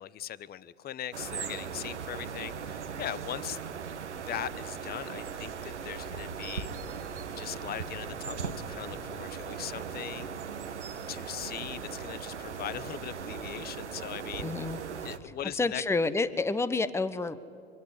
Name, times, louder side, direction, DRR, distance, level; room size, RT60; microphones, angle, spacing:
voice 1, 0.0-3.6 4.1-6.7 7.3-10.3 11.1-14.8 15.0-15.8, left 11 dB, 30° left, 18 dB, 0.8 m, -40 dB
sound 1, 1.1-15.2, right 6 dB, 85° right, 1.5 m, -38 dB
voice 2, 14.4-14.8 15.5-17.4, left 3 dB, 10° left, 14 dB, 1.0 m, -29 dB
24.5 x 22.0 x 10.0 m, 2.4 s
hypercardioid pair, 80°, 34 cm